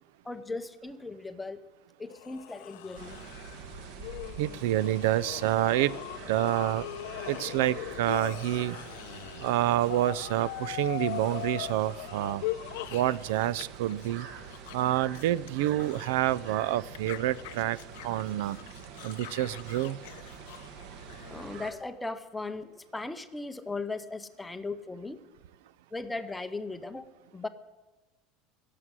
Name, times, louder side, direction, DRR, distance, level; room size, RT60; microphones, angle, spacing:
voice 1, 0.2-1.6 2.0-3.2 21.3-25.3 25.9-27.5, left 3 dB, 5° left, 10 dB, 0.6 m, -38 dB
sound 1, 2.1-13.6 13.9-16.5 16.9-21.4, left 15 dB, 80° left, 0.7 m, -41 dB
sound 2, 2.9-21.7, right 6 dB, 55° right, 1.5 m, -46 dB
voice 2, 4.4-6.0 6.3-6.9 7.3-8.8 9.4-12.4 12.9-14.3 14.7-17.8 18.0-18.6 19.0-20.0, right 14 dB, 80° right, 20 dB, 0.5 m, -28 dB
17.5 x 7.6 x 9.6 m, 1.2 s
cardioid pair, 175°, 0 cm